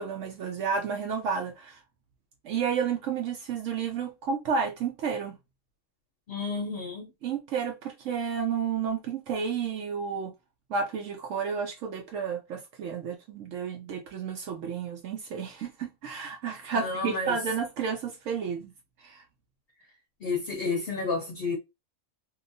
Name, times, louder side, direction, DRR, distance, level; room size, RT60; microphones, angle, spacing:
voice 1, 0.0-1.8 2.4-5.4 7.2-10.3 10.7-18.7 19.0-19.2, right 6 dB, 70° right, 0.9 m, -31 dB
voice 2, 6.3-7.1 16.7-17.4 20.2-21.6, left 4 dB, 55° left, 0.7 m, -31 dB
2.7 x 2.3 x 2.6 m
omnidirectional pair, 1.4 m